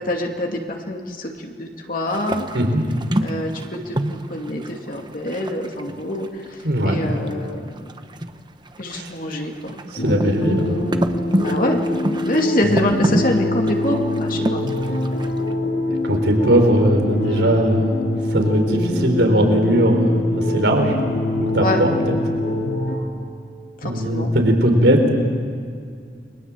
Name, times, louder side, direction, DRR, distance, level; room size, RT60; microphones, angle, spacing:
voice 1, 0.0-2.5 3.2-7.9 8.8-9.8 11.4-11.8 12.2-14.6 17.2-17.7 21.5-21.8 23.8-24.3, left 1 dB, 50° left, 1 dB, 2.5 m, -25 dB
sound 1, 2.1-6.6 6.9-9.2 9.4-15.5, right 1 dB, 25° right, 1.1 m, -27 dB
voice 2, 6.6-7.0 8.9-9.1 9.9-10.8 16.0-18.0 18.3-21.0 21.4-22.2 23.8-25.0, right 1 dB, 80° right, 4 dB, 4.3 m, -19 dB
sound 2, 10.0-23.0, left 1 dB, 80° left, 7.2 m, -24 dB
30.0 x 22.5 x 7.6 m, 2.2 s
head